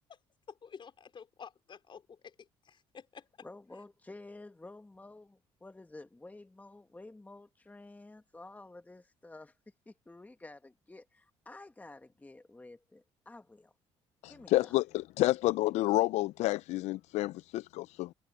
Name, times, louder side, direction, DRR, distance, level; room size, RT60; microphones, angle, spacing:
voice 1, 0.5-3.3, left 6 dB, 40° left, 4.2 m, -50 dB
voice 2, 3.4-9.6 9.8-13.7 14.3-14.8, left 2 dB, 15° left, 1.6 m, -51 dB
voice 3, 14.2-18.1, left 17 dB, 70° left, 0.4 m, -29 dB
supercardioid pair, 75°, 12 cm